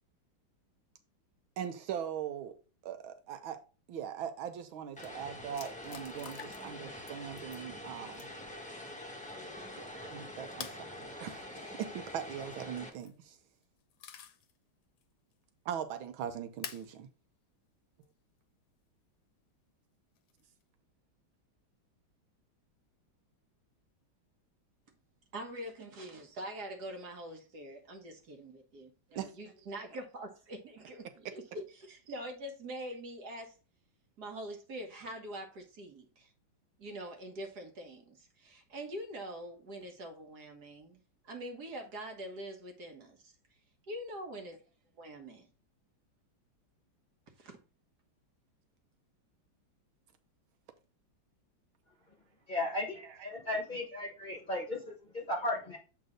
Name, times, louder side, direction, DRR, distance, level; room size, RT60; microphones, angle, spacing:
voice 1, 1.6-2.6 2.8-3.6 3.9-8.3 9.7-13.4 15.6-17.1 29.1-29.3 53.0-53.3, right 9 dB, 80° right, 1.6 m, -41 dB
sound 1, 4.6-4.7 4.9-5.1 5.6-6.8 7.1-7.6 8.1-8.5 10.6-10.9 12.8-13.2 13.6-14.5 15.0-15.1 16.6-16.9 18.0-18.1 20.2-20.6, left 8 dB, 65° left, 1.2 m, -47 dB
Vehicle, 5.0-12.9, left 1 dB, 5° left, 0.8 m, -45 dB
voice 2, 25.3-33.5 34.2-36.3 36.8-43.3 43.9-44.6 45.0-45.4 47.4-47.6, right 1 dB, 55° right, 1.8 m, -44 dB
voice 3, 52.5-55.8, left 1 dB, 25° left, 1.2 m, -36 dB
7.9 x 3.9 x 3.8 m
omnidirectional pair, 2.2 m